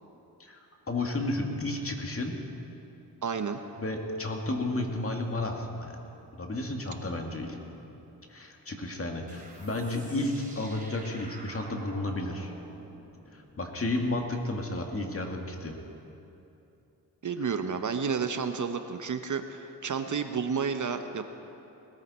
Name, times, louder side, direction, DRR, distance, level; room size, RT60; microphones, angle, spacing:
voice 1, 0.9-2.4 3.8-6.0 6.3-7.6 8.3-12.5 13.3-15.8, left 2 dB, 30° left, 2 dB, 2.3 m, -32 dB
voice 2, 3.2-3.6 17.2-21.2, right 6 dB, 45° right, 8 dB, 0.9 m, -31 dB
sound 1, 9.3-14.6, right 1 dB, 20° right, 3.2 m, -50 dB
20.5 x 14.5 x 4.3 m, 2.9 s
cardioid pair, 60°, 42 cm